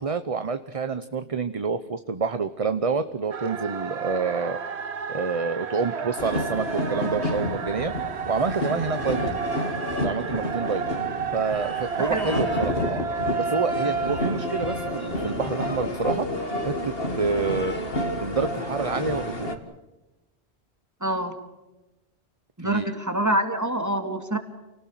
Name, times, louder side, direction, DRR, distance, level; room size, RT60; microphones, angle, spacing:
voice 1, 0.0-4.6 5.1-7.9 8.3-9.4 10.0-10.9 11.3-13.0 13.4-17.9 18.2-19.5 22.6-23.0, right 5 dB, 35° right, 11 dB, 0.9 m, -28 dB
sound 1, 3.3-16.1, right 6 dB, 75° right, 1.3 m, -32 dB
sound 2, 6.2-19.6, left 1 dB, 60° left, 2.6 m, -30 dB
voice 2, 12.0-12.5 13.8-14.0 21.0-21.3 22.6-24.4, right 1 dB, 15° right, 7 dB, 2.6 m, -26 dB
29.0 x 19.0 x 7.6 m, 1.0 s
omnidirectional pair, 1.1 m